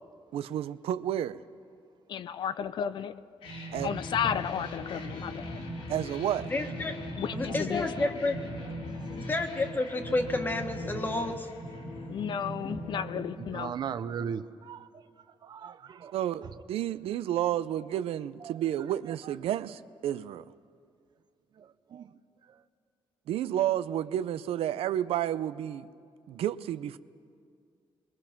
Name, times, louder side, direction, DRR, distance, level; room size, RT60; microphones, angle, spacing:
voice 1, 0.3-1.4 3.7-3.9 5.9-6.5 16.1-20.4 23.3-25.9 26.3-27.0, right 11 dB, 90° right, 0.5 m, -31 dB
voice 2, 2.1-3.3 3.8-5.6 7.2-8.1 12.1-13.8, left 8 dB, 55° left, 0.5 m, -33 dB
sound 1, 3.4-13.9, equal, 85° left, 3.3 m, -39 dB
voice 3, 6.5-7.0 7.3-8.4 9.3-11.5 12.6-12.8, left 2 dB, 20° left, 1.5 m, -30 dB
voice 4, 13.4-14.9 15.4-16.1 18.4-18.5 19.2-19.3 21.6-22.1, right 7 dB, 50° right, 0.6 m, -38 dB
27.0 x 22.0 x 5.9 m
cardioid pair, 160°, 10 cm